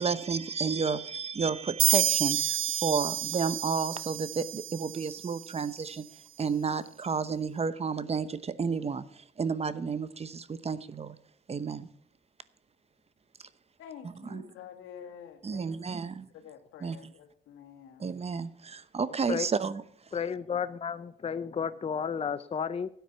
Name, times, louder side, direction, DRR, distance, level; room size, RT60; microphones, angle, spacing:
voice 1, 0.0-6.0 6.4-11.1 11.5-11.9 14.2-14.5 15.4-16.3 16.8-17.0 18.0-19.8, right 5 dB, 30° right, 0.8 m, -31 dB
sound 1, 1.8-5.4, right 12 dB, 75° right, 0.6 m, -29 dB
voice 2, 13.8-18.1, left 8 dB, 85° left, 2.4 m, -49 dB
voice 3, 20.1-22.9, left 7 dB, 30° left, 0.7 m, -32 dB
12.5 x 9.4 x 6.9 m
cardioid pair, 90°, 20 cm